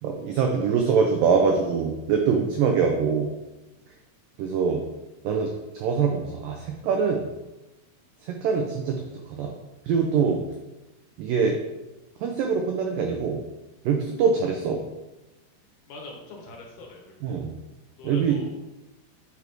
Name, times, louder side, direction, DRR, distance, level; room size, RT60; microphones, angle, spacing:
voice 1, 0.0-3.3 4.4-4.8 5.2-7.3 8.2-9.0 9.3-9.5 9.9-10.4 11.2-11.6 12.2-13.4 13.9-14.8 17.2-17.5 18.0-18.4, right 5 dB, 85° right, 3 dB, 1.9 m, -24 dB
voice 2, 15.9-17.4 18.0-18.6, left 2 dB, 70° left, 0 dB, 3.1 m, -43 dB
8.7 x 4.1 x 4.5 m, 1.0 s
omnidirectional pair, 4.8 m